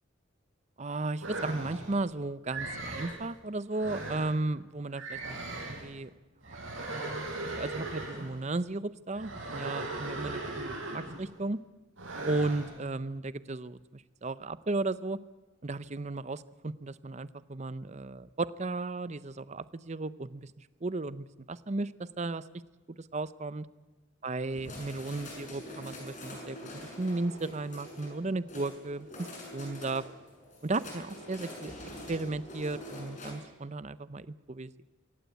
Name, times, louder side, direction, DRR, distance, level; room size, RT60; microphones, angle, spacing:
voice 1, 0.8-6.1 6.4-6.6 6.9-11.6 12.2-15.2 15.6-22.4 22.9-23.7 24.2-26.6 27.0-29.3 29.5-30.0 30.6-34.8, right 2 dB, 35° right, 16 dB, 0.7 m, -35 dB
sound 1, 1.2-2.0 2.5-3.2 3.7-4.4 4.9-5.9 6.4-8.4 9.1-11.3 12.0-12.8, right 2 dB, 80° right, 5.6 m, -38 dB
sound 2, 24.5-33.3, left 1 dB, 40° left, 7.0 m, -45 dB
23.5 x 17.5 x 8.3 m, 1.2 s
head